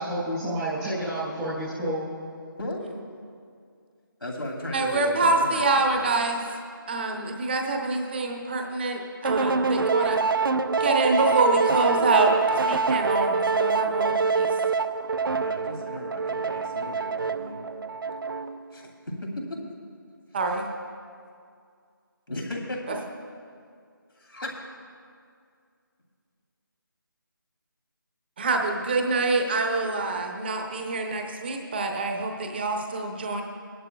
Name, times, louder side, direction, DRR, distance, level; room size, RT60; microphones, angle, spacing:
voice 1, 0.0-2.1, right 1 dB, 5° right, -9 dB, 0.4 m, -29 dB
voice 2, 2.5-2.9 4.2-6.1 15.4-17.6 18.7-19.6 22.3-23.0 24.2-24.6, left 1 dB, 85° left, -2 dB, 2.8 m, -36 dB
voice 3, 4.7-6.4 6.9-10.2 10.8-14.5 20.3-20.7 28.4-33.4, right 3 dB, 30° right, 3 dB, 0.7 m, -25 dB
sound 1, 9.2-18.6, right 4 dB, 70° right, 0.4 m, -25 dB
23.0 x 11.0 x 2.3 m, 2.2 s
figure-of-eight pair, 160°, 12 cm